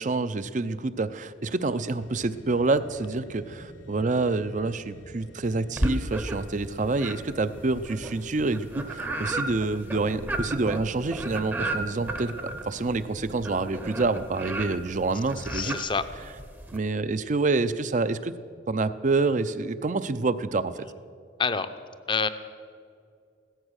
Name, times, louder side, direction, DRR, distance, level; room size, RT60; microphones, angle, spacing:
voice 1, 0.0-15.8 16.7-18.3 18.7-20.8, right 3 dB, 40° right, 13 dB, 0.5 m, -27 dB
sound 1, 2.0-13.7, left 1 dB, 85° left, 1.4 m, -48 dB
sound 2, 5.8-6.6 6.9-16.8, right 2 dB, 10° right, 0.7 m, -33 dB
sound 3, 10.5-19.3 19.8-19.9, right 1 dB, 70° right, 2.3 m, -49 dB
voice 2, 15.5-16.1 21.4-21.7 22.1-22.3, left 5 dB, 25° left, 11 dB, 0.6 m, -27 dB
16.0 x 14.0 x 6.4 m, 2.3 s
head